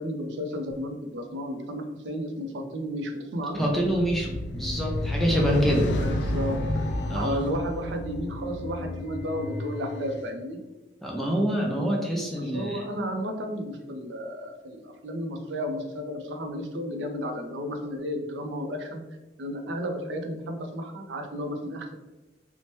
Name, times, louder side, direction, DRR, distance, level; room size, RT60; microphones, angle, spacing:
voice 1, 0.0-3.7 6.0-6.9 7.1-10.6 12.4-19.0 19.4-21.9, equal, 85° right, 4 dB, 0.5 m, -33 dB
voice 2, 3.6-5.9 7.1-7.4 11.0-12.8, equal, ahead, -2 dB, 0.3 m, -26 dB
sound 1, 3.8-10.2, left 1 dB, 80° left, 0.3 m, -30 dB
2.9 x 2.0 x 2.9 m, 1.1 s
head